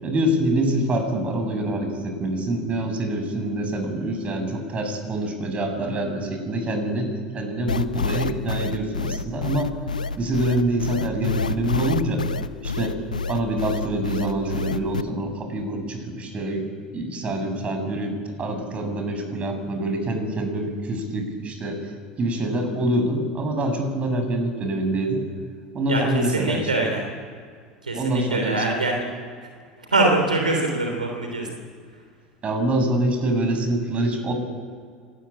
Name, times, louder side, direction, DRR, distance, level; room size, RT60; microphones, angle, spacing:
voice 1, 0.0-9.7 10.2-12.2 12.6-13.0 13.3-16.6 16.9-21.9 22.2-25.2 25.7-26.7 28.0-28.6 32.4-34.3, right 1 dB, 30° right, 5 dB, 7.2 m, -25 dB
sound 1, 7.7-15.0, left 4 dB, 80° left, 0.8 m, -27 dB
voice 2, 25.9-27.0 27.8-29.0 29.9-31.5, right 2 dB, 85° right, 2 dB, 3.3 m, -23 dB
25.5 x 20.0 x 8.7 m, 2.1 s
figure-of-eight pair, 75°, 4 cm